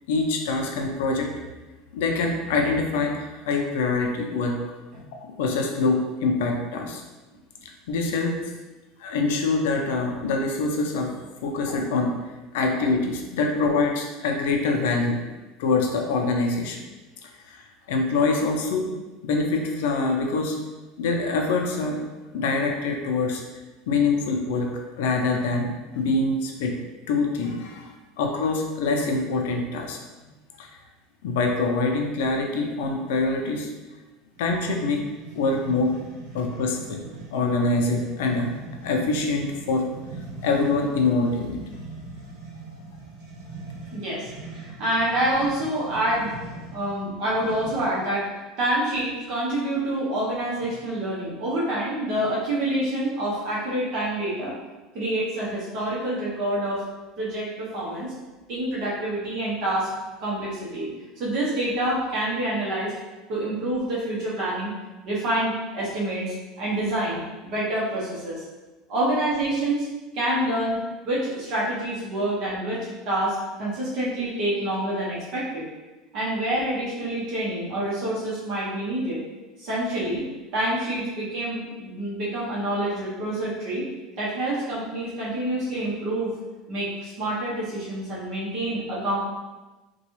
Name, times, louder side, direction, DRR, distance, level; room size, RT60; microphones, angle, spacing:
voice 1, 0.1-1.3 1.9-4.6 5.2-7.0 7.6-8.4 9.0-11.1 11.4-12.1 12.5-15.2 15.6-16.8 17.2-18.9 19.2-20.6 21.0-22.0 22.3-23.4 23.9-24.7 25.0-26.8 27.1-30.0 30.6-30.7 31.2-33.7 34.4-35.0 35.4-36.0 36.3-37.1 37.3-38.5 38.8-39.9 40.4-41.6, left 3 dB, 85° left, 2 dB, 0.5 m, -25 dB
sound 1, 34.3-48.1, right 3 dB, 85° right, 1.0 m, -42 dB
voice 2, 43.9-44.3 44.6-46.4 46.7-48.3 48.6-54.5 54.9-56.8 57.2-58.1 58.5-59.9 60.2-60.9 61.2-62.9 63.3-64.7 65.0-68.4 68.9-69.9 70.1-75.7 76.1-79.2 79.6-80.2 80.5-83.8 84.2-86.3 86.7-89.2, right 1 dB, 45° right, -6 dB, 0.9 m, -27 dB
3.8 x 2.3 x 3.1 m, 1.2 s
cardioid pair, 160°, 0 cm